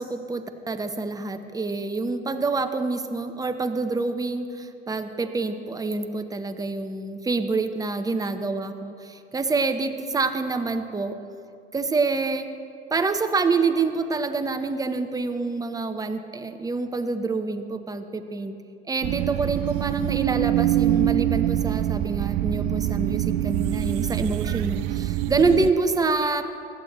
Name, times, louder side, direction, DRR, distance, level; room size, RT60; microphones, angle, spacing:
voice 1, 0.0-11.2 11.7-12.5 12.9-18.6 18.9-26.4, right 3 dB, 10° right, 8 dB, 0.8 m, -26 dB
sound 1, 19.0-25.7, right 13 dB, 45° right, 0.4 m, -25 dB
16.5 x 11.5 x 3.0 m, 2.5 s
hypercardioid pair, 85°, 34 cm